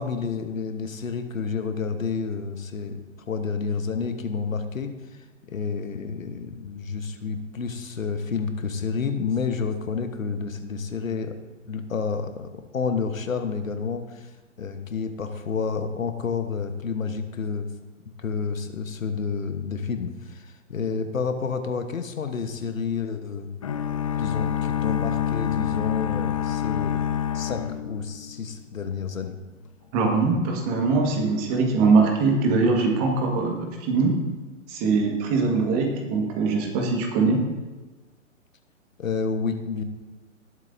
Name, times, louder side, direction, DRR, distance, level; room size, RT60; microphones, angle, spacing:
voice 1, 0.0-3.0 3.3-4.9 5.5-11.4 11.6-14.3 14.6-17.7 18.2-23.5 24.2-27.0 27.3-29.3 39.0-39.8, left 5 dB, 75° left, 7 dB, 1.3 m, -29 dB
sound 1, 23.6-28.6, left 9 dB, 25° left, 0.4 m, -27 dB
voice 2, 29.9-34.1 34.7-37.4, right 4 dB, 30° right, 2 dB, 1.8 m, -22 dB
19.0 x 8.0 x 2.7 m, 1.2 s
figure-of-eight pair, 130°, 40 cm